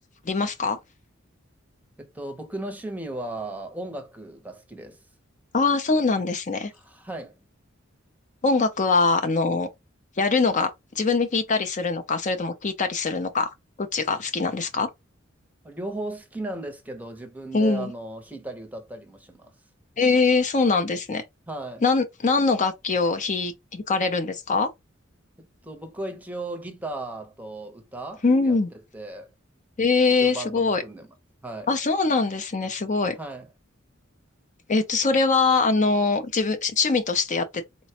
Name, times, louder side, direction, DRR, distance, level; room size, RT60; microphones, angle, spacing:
voice 1, 0.3-0.8 5.5-6.7 8.4-9.7 10.2-13.5 13.8-14.9 17.5-17.9 20.0-21.2 21.8-24.7 28.2-28.7 29.8-30.8 31.7-33.2 34.7-37.4, left 4 dB, 40° left, 0.5 m, -23 dB
voice 2, 2.0-5.0 6.7-7.4 15.6-19.5 21.5-21.8 25.6-28.6 28.9-29.3 30.2-31.1 31.4-31.7 33.2-33.5, right 2 dB, 10° right, 0.7 m, -36 dB
4.0 x 2.2 x 2.8 m
head